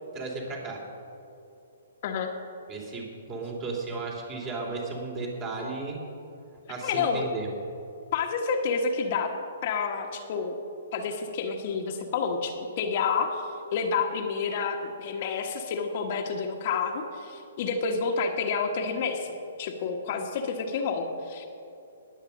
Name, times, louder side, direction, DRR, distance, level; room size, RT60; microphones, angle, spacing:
voice 1, 0.1-0.8 2.7-6.0 6.7-7.5, right 3 dB, 30° right, -1 dB, 3.2 m, -34 dB
voice 2, 6.8-7.2 8.1-9.3 9.6-10.6 10.9-13.4 13.7-21.5, left 5 dB, 45° left, 3 dB, 1.4 m, -29 dB
20.0 x 8.0 x 5.3 m, 2.8 s
figure-of-eight pair, 125°, 0 cm